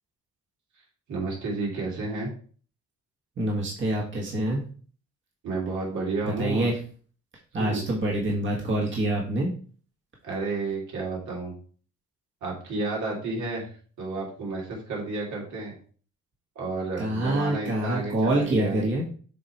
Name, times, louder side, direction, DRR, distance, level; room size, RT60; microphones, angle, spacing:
voice 1, 1.1-2.3 5.4-6.7 7.6-7.8 10.2-11.5 12.4-15.8 16.5-18.9, right 3 dB, 75° right, -3 dB, 2.8 m, -31 dB
voice 2, 3.4-4.6 6.2-6.8 7.5-9.5 17.0-19.0, right 1 dB, 40° right, -2 dB, 1.7 m, -26 dB
7.3 x 3.2 x 4.3 m, 0.43 s
cardioid pair, 90°, 30 cm